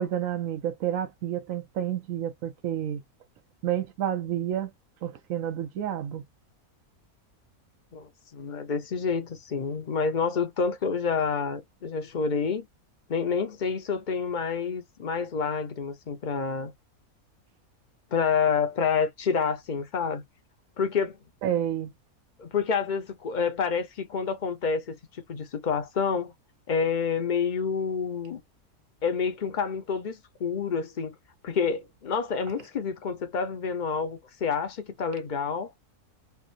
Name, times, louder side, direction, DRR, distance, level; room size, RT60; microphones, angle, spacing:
voice 1, 0.0-3.0 3.6-4.7 5.0-6.2 21.4-21.9, right 10 dB, 70° right, 1.0 m, -30 dB
voice 2, 7.9-12.7 13.1-16.7 18.1-20.2 20.8-21.2 22.4-26.3 26.7-28.4 29.0-31.1 31.4-35.7, left 5 dB, 40° left, 0.8 m, -28 dB
3.4 x 2.5 x 2.5 m
omnidirectional pair, 1.6 m